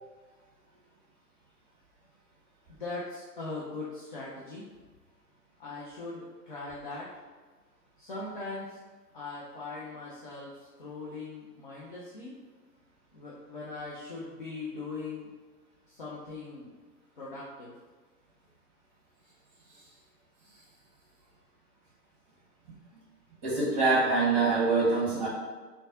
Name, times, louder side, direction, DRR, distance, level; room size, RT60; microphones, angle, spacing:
voice 1, 2.7-4.6 5.6-7.1 8.0-8.8 9.1-12.3 13.1-15.3 15.9-16.7 17.2-17.7, left 3 dB, 35° left, -7 dB, 0.5 m, -40 dB
voice 2, 23.4-25.3, right 3 dB, 10° right, -7 dB, 0.9 m, -25 dB
3.8 x 2.3 x 3.6 m, 1.3 s
figure-of-eight pair, 120°, 49 cm